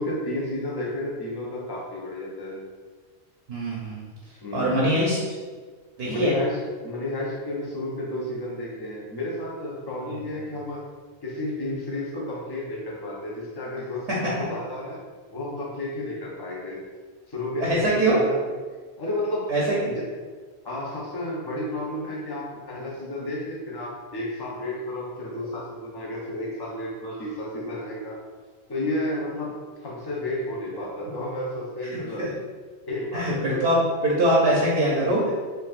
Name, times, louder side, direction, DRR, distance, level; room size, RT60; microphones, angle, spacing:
voice 1, 0.0-2.6 4.4-4.9 6.1-10.8 11.2-15.0 15.3-16.8 17.3-18.5 19.0-19.5 20.0-20.1 20.6-28.2 28.7-32.3 32.9-33.6, left 1 dB, 25° left, -4 dB, 0.6 m, -32 dB
voice 2, 3.5-4.0 4.5-5.2 6.0-6.3 17.6-18.2 19.5-19.9 32.2-32.3 33.1-35.3, right 1 dB, 65° right, -5 dB, 0.9 m, -22 dB
4.5 x 2.5 x 2.4 m, 1.5 s
omnidirectional pair, 1.2 m